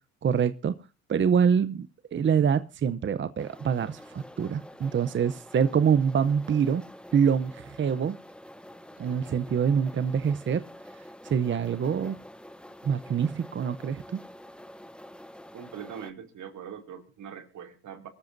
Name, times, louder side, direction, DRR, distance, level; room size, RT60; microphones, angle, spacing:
voice 1, 0.2-0.8 1.1-6.8 7.1-8.2 9.0-10.6 11.2-12.2 12.8-14.2, right 7 dB, 40° right, 0.7 m, -25 dB
sound 1, 3.4-16.1, equal, 5° left, 0.8 m, -47 dB
voice 2, 15.5-18.1, right 8 dB, 75° right, 2.7 m, -42 dB
23.0 x 13.5 x 2.6 m
cardioid pair, 90°, 30 cm